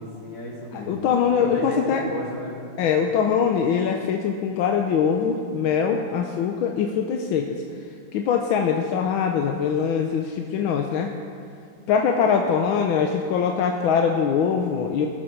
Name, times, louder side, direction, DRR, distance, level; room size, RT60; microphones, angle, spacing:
voice 1, 0.0-2.6, left 1 dB, 65° left, -5 dB, 3.4 m, -34 dB
voice 2, 0.7-2.0 2.8-7.6 8.1-11.1 11.9-15.1, left 7 dB, 90° left, 2 dB, 1.5 m, -22 dB
20.0 x 7.5 x 4.5 m, 2.5 s
omnidirectional pair, 2.2 m